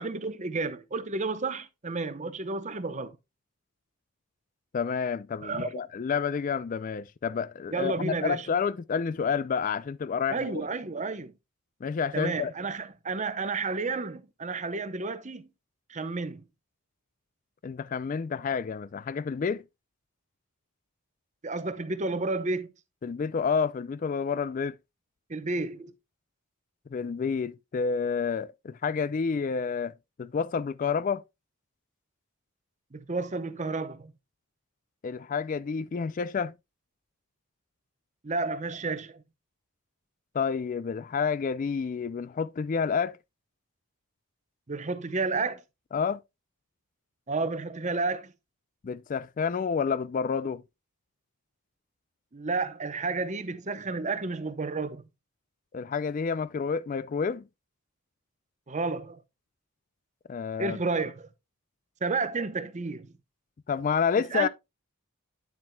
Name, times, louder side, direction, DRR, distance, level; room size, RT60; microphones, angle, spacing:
voice 1, 0.0-3.2 5.4-5.7 7.7-8.5 10.3-11.3 12.1-15.5 15.9-16.4 21.4-22.7 25.3-25.9 32.9-34.1 38.2-39.2 44.7-45.6 47.3-48.3 52.3-55.1 58.7-59.2 60.6-61.3 62.0-63.1 64.3-64.5, right 3 dB, 35° right, 0.7 m, -31 dB
voice 2, 4.7-10.7 11.8-12.5 17.6-19.6 23.0-24.8 26.9-29.9 30.2-31.2 35.0-36.5 40.3-43.2 45.9-46.2 48.8-50.6 55.7-57.5 60.3-60.8 63.7-64.5, left 6 dB, 35° left, 0.3 m, -29 dB
9.6 x 7.5 x 2.2 m
head